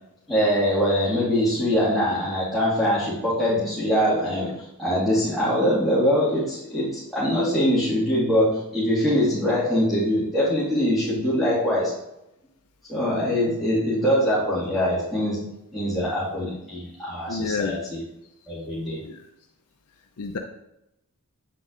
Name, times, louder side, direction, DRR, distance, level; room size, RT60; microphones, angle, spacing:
voice 1, 0.3-11.9 12.9-15.4 15.7-18.0 18.5-19.0, equal, ahead, -11 dB, 1.9 m, -23 dB
voice 2, 17.3-17.8 19.0-19.2 20.2-20.4, left 4 dB, 70° left, 3 dB, 0.5 m, -28 dB
8.3 x 7.6 x 2.5 m, 0.87 s
head